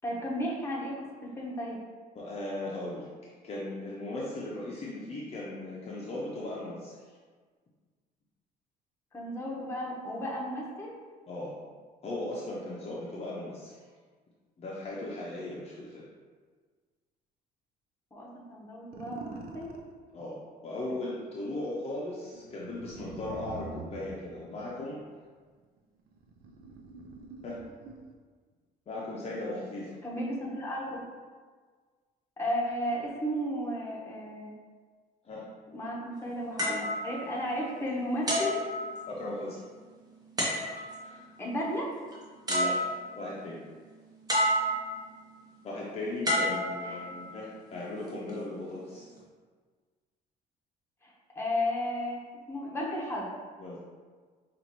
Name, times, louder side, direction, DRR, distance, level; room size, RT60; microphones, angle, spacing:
voice 1, 0.0-1.8 9.1-10.9 18.1-19.7 20.9-21.0 30.0-31.0 32.4-34.5 35.7-38.6 41.4-41.9 46.8-47.1 51.0-53.3, equal, 15° left, -4 dB, 1.0 m, -34 dB
voice 2, 2.1-3.1 3.4-7.0 11.3-11.5 12.0-13.9 14.6-16.0 20.1-25.0 27.4-27.6 28.9-30.0 35.2-35.4 39.1-39.6 41.0-41.2 42.5-42.8 43.1-43.6 45.6-49.1 53.6-53.8, left 2 dB, 40° left, -5 dB, 0.7 m, -37 dB
sound 1, 18.9-19.9 22.3-25.1 25.8-28.2, right 3 dB, 65° right, 0.6 m, -45 dB
sound 2, 36.6-37.8 38.3-39.4 40.4-41.1 42.1-42.2 42.5-43.3 44.3-45.1 46.2-47.4 48.1-48.3, equal, 20° right, 1.0 m, -30 dB
5.3 x 2.5 x 3.0 m, 1.6 s
cardioid pair, 110°, 17 cm